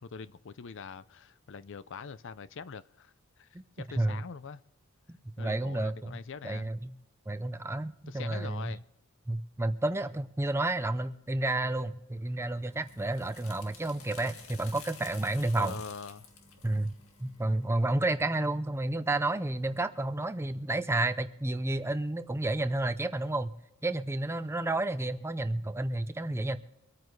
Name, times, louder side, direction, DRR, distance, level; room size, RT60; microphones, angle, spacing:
voice 1, 0.0-4.6 5.4-6.7 8.1-8.8 15.5-16.3, left 5 dB, 55° left, 0.5 m, -44 dB
voice 2, 5.1-6.9 7.3-8.7 9.3-15.8 16.6-23.5 23.8-26.6, right 2 dB, 10° right, 0.5 m, -31 dB
sound 1, 12.4-17.9, left 5 dB, 75° left, 1.9 m, -52 dB
24.5 x 9.2 x 3.2 m
head